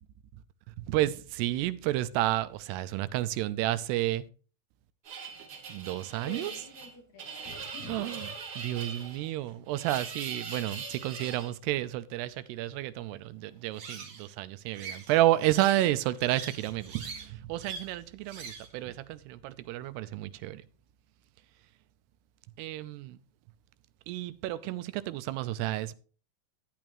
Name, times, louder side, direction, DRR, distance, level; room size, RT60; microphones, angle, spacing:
voice 1, 0.9-4.2 5.7-6.5 7.9-8.2 8.6-20.6 22.6-23.2 24.1-26.0, right 15 dB, 85° right, 2.7 m, -31 dB
sound 1, 5.1-11.5 13.7-14.3 14.7-15.9 16.2-17.3 17.6-17.9 18.3-18.7, right 5 dB, 45° right, 2.3 m, -42 dB
voice 2, 6.2-8.1 9.4-9.6, left 1 dB, 50° left, 3.2 m, -48 dB
12.5 x 10.5 x 3.1 m
omnidirectional pair, 4.7 m